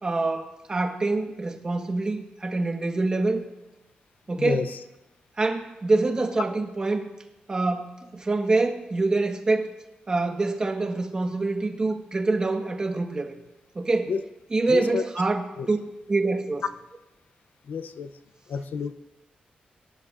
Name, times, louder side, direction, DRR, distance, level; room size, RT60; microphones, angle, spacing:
voice 1, 0.0-3.5 4.3-4.6 5.4-7.1 7.5-9.7 10.1-13.4 13.7-14.1 14.5-15.8 16.1-16.6, right 3 dB, 25° right, 3 dB, 1.2 m, -25 dB
voice 2, 4.4-4.8 14.1-14.2 14.7-15.1 15.6-15.7 17.7-18.1 18.5-18.9, left 5 dB, 75° left, 10 dB, 0.5 m, -29 dB
23.0 x 11.0 x 2.5 m, 1.0 s
wide cardioid pair, 140°, 3 cm